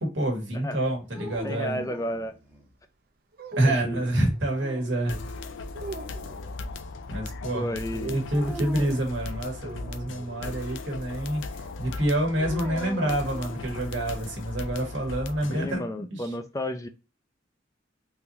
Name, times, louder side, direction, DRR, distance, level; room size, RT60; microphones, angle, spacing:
voice 1, 0.0-1.8 3.6-5.2 7.1-11.4 11.8-16.2, right 1 dB, 75° right, 1.5 m, -27 dB
sound 1, 1.1-2.7 4.3-5.5 8.3-9.1 12.3-14.0, equal, 10° right, 0.7 m, -40 dB
voice 2, 1.4-2.3 3.6-4.0 7.5-8.2 15.5-16.9, left 1 dB, 15° left, 0.4 m, -32 dB
sound 2, 3.3-4.4 5.7-6.6 9.6-10.7, right 3 dB, 50° right, 0.5 m, -42 dB
sound 3, 5.1-15.8, left 3 dB, 85° left, 0.5 m, -37 dB
3.8 x 2.7 x 2.8 m
head